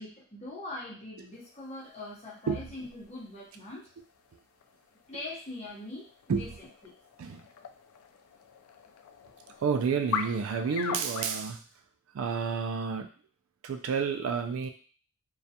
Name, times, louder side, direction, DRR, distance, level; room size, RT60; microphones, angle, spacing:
voice 1, 0.0-3.9 5.1-6.9, left 2 dB, 30° left, -5 dB, 0.8 m, -42 dB
sound 1, 1.3-11.4, left 7 dB, 80° left, 0.3 m, -42 dB
voice 2, 9.6-11.6 12.1-13.1 13.6-14.7, right 6 dB, 70° right, 6 dB, 0.3 m, -30 dB
2.3 x 2.2 x 2.7 m, 0.39 s
head